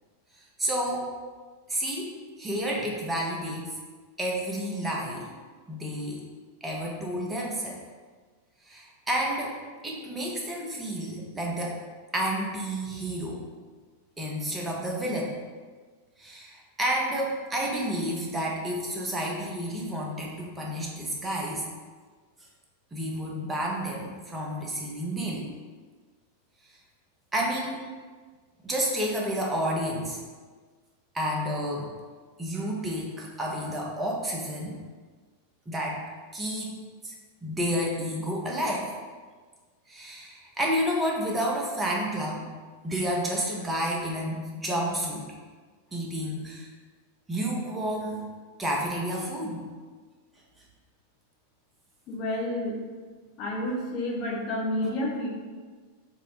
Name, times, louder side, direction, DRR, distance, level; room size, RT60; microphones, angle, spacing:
voice 1, 0.3-1.1 1.7-3.7 4.2-5.3 5.7-6.2 6.6-7.8 8.6-9.6 9.8-11.8 12.1-13.5 14.2-15.4 16.2-21.7 22.9-25.5 26.7-26.8 27.3-27.9 28.6-30.2 31.1-31.9 32.4-34.8 35.7-36.0 36.3-37.1 37.4-38.9 39.9-42.5 42.8-45.3 45.9-46.7 47.3-48.2 48.6-49.7, equal, 15° right, -2 dB, 0.7 m, -30 dB
voice 2, 52.1-52.8 53.4-55.3, left 1 dB, 40° left, -2 dB, 0.7 m, -30 dB
2.7 x 2.1 x 4.0 m, 1.5 s
figure-of-eight pair, 90°, 0 cm